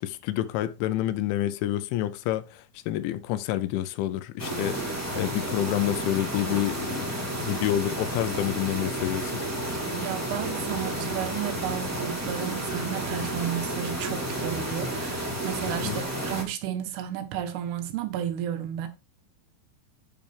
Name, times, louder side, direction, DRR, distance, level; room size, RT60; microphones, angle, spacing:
voice 1, 0.0-9.4 15.8-16.0, left 13 dB, 85° left, 3.0 m, -29 dB
sound 1, 4.4-16.4, right 1 dB, 10° right, 0.9 m, -31 dB
voice 2, 9.9-18.9, right 10 dB, 90° right, 3.8 m, -33 dB
9.0 x 6.7 x 3.4 m
omnidirectional pair, 5.5 m